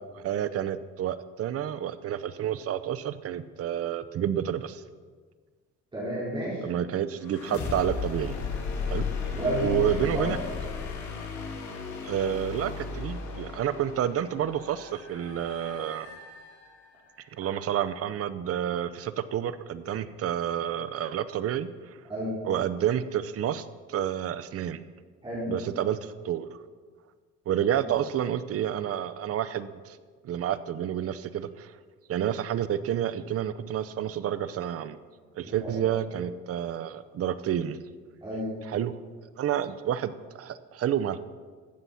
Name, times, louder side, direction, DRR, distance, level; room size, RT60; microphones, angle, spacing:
voice 1, 0.1-4.8 6.6-8.4 8.9-10.4 12.0-16.1 17.3-22.0 22.4-24.8 25.5-26.6 27.5-30.0 30.2-31.8 32.1-35.0 35.4-37.8 38.7-39.0 39.4-41.2, right 10 dB, 55° right, 14 dB, 0.7 m, -29 dB
voice 2, 5.9-6.6 9.3-9.9 10.1-10.3 22.1-22.4 25.2-25.5 27.8-27.9 35.4-35.7 38.2-38.5, right 1 dB, 15° right, -8 dB, 4.3 m, -31 dB
sound 1, 7.2-17.0, left 5 dB, 75° left, 2.3 m, -35 dB
14.0 x 7.7 x 5.7 m, 1.5 s
cardioid pair, 120°, 29 cm